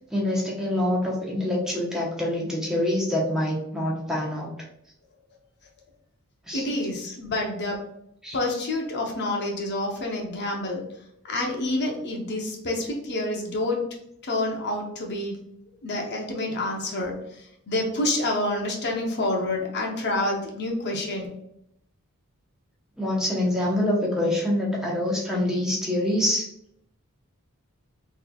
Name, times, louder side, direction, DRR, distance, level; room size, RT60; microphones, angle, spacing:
voice 1, 0.1-4.5 6.5-6.7 8.2-8.4 16.5-16.6 23.0-26.4, left 1 dB, 5° right, -4 dB, 0.9 m, -25 dB
voice 2, 6.5-7.8 8.3-10.8 11.2-13.8 14.2-15.4 15.8-21.3, left 2 dB, 50° left, 1 dB, 0.7 m, -28 dB
3.9 x 3.2 x 2.3 m, 0.75 s
head